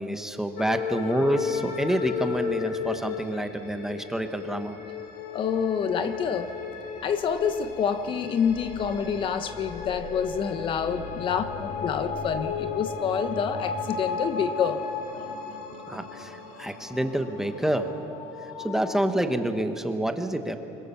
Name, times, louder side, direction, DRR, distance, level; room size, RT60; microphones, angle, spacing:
voice 1, 0.0-4.8 15.9-17.9 18.4-20.6, right 1 dB, 5° right, 6 dB, 1.1 m, -28 dB
sound 1, 0.6-19.6, left 6 dB, 70° left, 2.4 m, -35 dB
voice 2, 5.3-6.5 7.0-14.8 15.1-15.3, left 7 dB, 40° left, 10 dB, 1.0 m, -27 dB
25.0 x 22.5 x 7.1 m, 3.0 s
cardioid pair, 155°, 14 cm